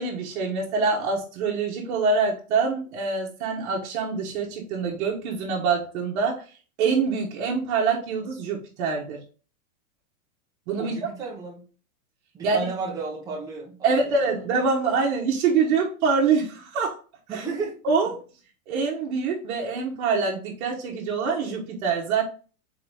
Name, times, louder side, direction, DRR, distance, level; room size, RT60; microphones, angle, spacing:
voice 1, 0.0-6.4 6.8-9.2 10.7-10.9 12.4-12.6 13.8-17.0 17.3-17.5 17.8-18.1 18.7-22.2, right 5 dB, 50° right, -3 dB, 1.1 m, -25 dB
voice 2, 10.8-11.6 12.3-14.1 17.3-17.8, right 4 dB, 10° right, -3 dB, 0.7 m, -33 dB
3.9 x 3.8 x 3.4 m, 0.38 s
supercardioid pair, 165°, 42 cm